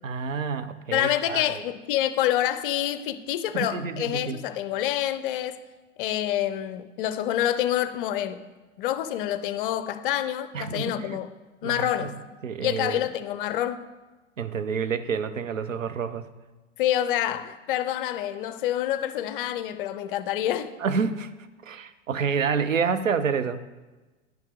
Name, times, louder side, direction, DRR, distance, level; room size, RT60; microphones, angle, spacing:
voice 1, 0.0-1.5 3.5-4.4 10.5-11.2 11.6-12.1 12.4-13.0 14.4-16.3 20.8-21.3 21.6-23.6, right 6 dB, 90° right, 0.5 m, -28 dB
voice 2, 0.9-5.6 6.0-8.4 8.8-11.3 11.6-12.2 12.6-13.9 16.8-20.7, left 12 dB, 45° left, 0.5 m, -27 dB
10.5 x 5.5 x 3.4 m
figure-of-eight pair, 95°, 38 cm